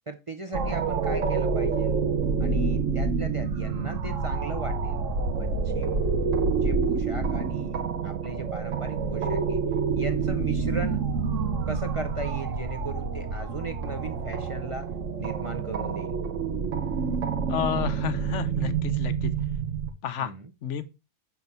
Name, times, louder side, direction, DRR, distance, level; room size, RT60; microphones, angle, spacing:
voice 1, 0.1-2.0 2.4-5.0 5.4-6.0 6.6-9.6 10.0-11.0 11.7-14.9 15.2-16.2 20.2-20.5, right 2 dB, 35° right, 0.5 m, -37 dB
sound 1, 0.5-19.9, right 5 dB, 85° right, 1.3 m, -27 dB
voice 2, 17.5-19.3 20.0-20.3 20.6-20.8, left 9 dB, 75° left, 1.0 m, -30 dB
6.1 x 4.2 x 5.4 m
omnidirectional pair, 1.3 m